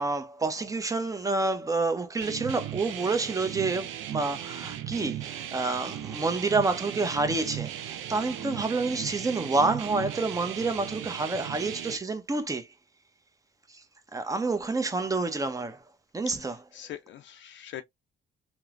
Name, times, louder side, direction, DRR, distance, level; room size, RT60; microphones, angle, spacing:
voice 1, 0.0-12.7 13.7-13.8 14.1-15.8 16.1-16.6, right 3 dB, 15° right, 0.6 m, -28 dB
sound 1, 2.2-12.0, right 11 dB, 80° right, 0.4 m, -37 dB
voice 2, 16.4-17.8, left 11 dB, 70° left, 0.4 m, -43 dB
2.9 x 2.0 x 2.4 m
cardioid pair, 90°, 20 cm